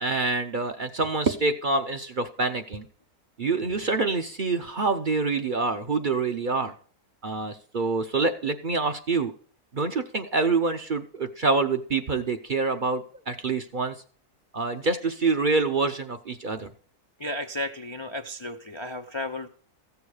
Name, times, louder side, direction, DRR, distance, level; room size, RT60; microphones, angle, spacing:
voice 1, 0.0-2.9 3.4-6.7 7.2-9.3 9.7-14.0 14.5-16.7, right 3 dB, 45° right, 7 dB, 0.7 m, -26 dB
voice 2, 17.2-19.5, left 1 dB, 45° left, 5 dB, 0.3 m, -33 dB
15.0 x 7.1 x 4.9 m, 0.44 s
omnidirectional pair, 1.6 m